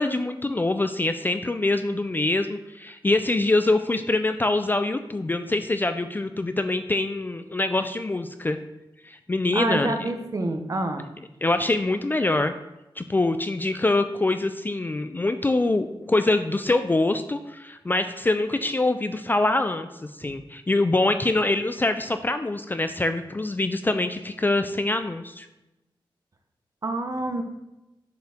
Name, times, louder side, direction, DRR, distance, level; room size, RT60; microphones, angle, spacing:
voice 1, 0.0-8.6 9.0-9.9 11.4-12.6 13.0-19.9 20.2-25.5, left 2 dB, 20° left, 9 dB, 0.3 m, -24 dB
voice 2, 9.5-11.1 20.2-20.4 26.8-27.4, right 2 dB, 40° right, 6 dB, 0.8 m, -27 dB
7.6 x 4.4 x 3.6 m, 0.96 s
wide cardioid pair, 110°, 9 cm